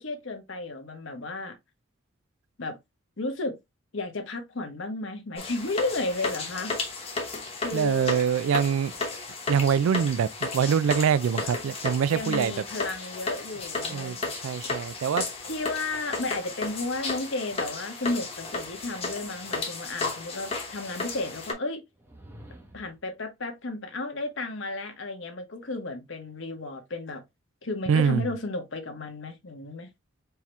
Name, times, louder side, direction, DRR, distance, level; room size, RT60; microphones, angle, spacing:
voice 1, 0.0-1.5 2.6-2.8 3.2-3.6 3.9-6.7 7.6-8.1 12.1-14.2 15.4-21.8 22.7-27.2 27.6-29.9, left 2 dB, 65° left, 1.1 m, -33 dB
sound 1, 5.4-21.5, left 3 dB, 30° left, 1.0 m, -34 dB
voice 2, 7.7-8.9 9.5-12.5 13.9-15.3 27.9-28.3, right 7 dB, 75° right, 0.3 m, -24 dB
sound 2, 21.9-23.1, equal, 10° right, 0.7 m, -48 dB
4.5 x 2.9 x 3.2 m
head